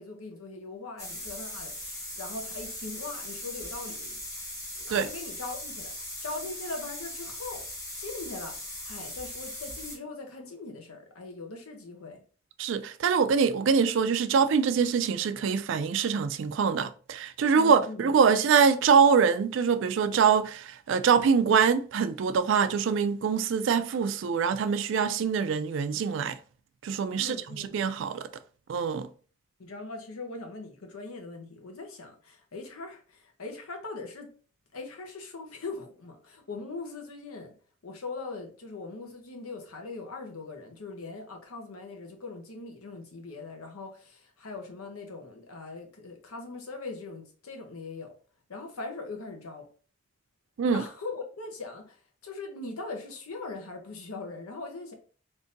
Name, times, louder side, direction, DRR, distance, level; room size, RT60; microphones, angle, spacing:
voice 1, 0.0-4.2 4.8-7.6 8.0-12.2 17.5-18.1 27.2-27.8 29.6-34.3 34.7-37.5 37.8-48.2 48.5-49.7 50.7-54.9, left 3 dB, 90° left, 0.8 m, -41 dB
sound 1, 1.0-10.0, left 1 dB, 15° left, 1.0 m, -39 dB
voice 2, 12.6-26.4 26.8-28.3 28.7-29.1 50.6-50.8, right 6 dB, 60° right, 0.3 m, -24 dB
3.7 x 2.6 x 2.6 m
head